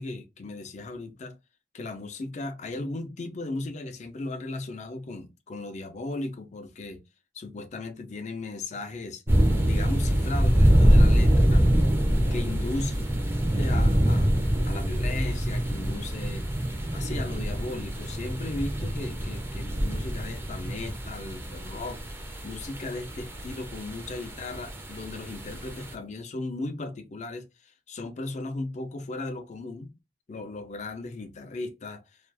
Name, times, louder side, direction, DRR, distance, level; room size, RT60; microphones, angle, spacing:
voice 1, 0.0-1.4 1.7-7.0 7.3-9.2 9.6-11.7 12.3-13.0 13.6-16.5 16.9-22.0 22.4-29.9 30.3-32.0, left 2 dB, 40° left, 0.4 m, -36 dB
sound 1, 9.3-25.9, equal, 15° right, 0.5 m, -25 dB
2.4 x 2.3 x 2.5 m
head